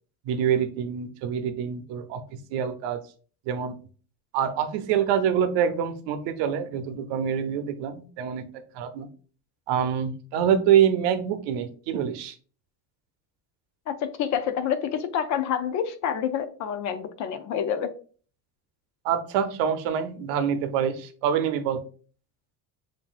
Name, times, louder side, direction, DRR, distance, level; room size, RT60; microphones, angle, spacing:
voice 1, 0.3-3.0 3.5-3.7 4.3-8.4 8.7-9.1 9.7-12.3 19.0-21.8, right 8 dB, 75° right, 9 dB, 0.7 m, -25 dB
voice 2, 13.9-17.9, left 8 dB, 45° left, 9 dB, 0.4 m, -28 dB
7.5 x 2.7 x 2.4 m, 0.41 s
cardioid pair, 170°, 42 cm